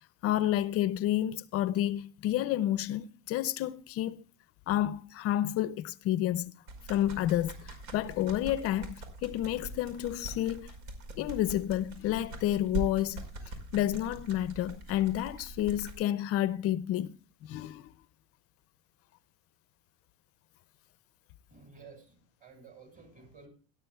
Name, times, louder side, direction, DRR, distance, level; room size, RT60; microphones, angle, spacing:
voice 1, 0.2-4.2 4.7-6.5 6.9-10.7 11.2-13.2 13.7-17.1 17.5-17.9, left 12 dB, 35° left, 0.4 m, -30 dB
sound 1, 6.7-15.9, right 1 dB, 80° right, 5.2 m, -42 dB
voice 2, 21.5-23.5, right 4 dB, 20° right, 6.7 m, -53 dB
17.5 x 12.5 x 2.3 m
supercardioid pair, 145°, 41 cm